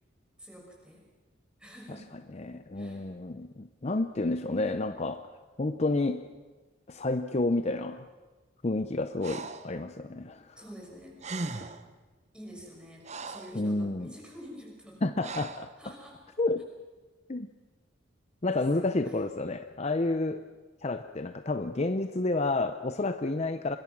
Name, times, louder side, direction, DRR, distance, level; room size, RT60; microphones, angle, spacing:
voice 1, 0.4-1.1 1.6-2.1 2.7-3.1 10.5-11.7 12.3-15.0 15.8-16.2 18.5-19.2, equal, 5° right, -2 dB, 5.9 m, -48 dB
voice 2, 2.4-5.3 5.6-6.2 6.9-8.1 8.6-10.6 13.5-14.1 15.0-15.7 16.4-16.7 17.3-17.5 18.4-20.4 20.8-23.8, left 2 dB, 35° left, 9 dB, 0.6 m, -30 dB
Breathing, 9.2-9.7 10.9-11.0 11.2-11.9 12.6-13.6 15.2-15.7, right 3 dB, 35° right, 1.0 m, -38 dB
25.5 x 21.5 x 6.1 m, 1.3 s
head